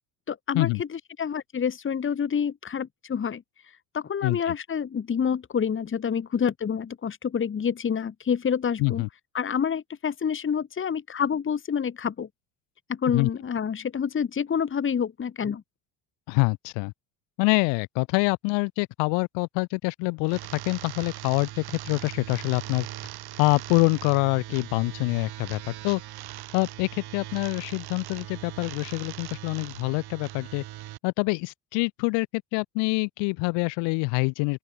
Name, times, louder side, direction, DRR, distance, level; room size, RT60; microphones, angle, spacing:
voice 1, 0.3-3.4 3.9-9.0 9.3-12.3 12.9-15.6, left 7 dB, 30° left, 1.6 m, -28 dB
voice 2, 4.2-4.5 8.8-9.1 13.1-13.3 16.3-16.9 17.4-22.9 23.4-26.0 26.5-30.6 31.0-34.6, left 31 dB, 80° left, 2.5 m, -26 dB
sound 1, 20.2-31.0, right 15 dB, 60° right, 2.8 m, -40 dB
open air
supercardioid pair, 95°, 42 cm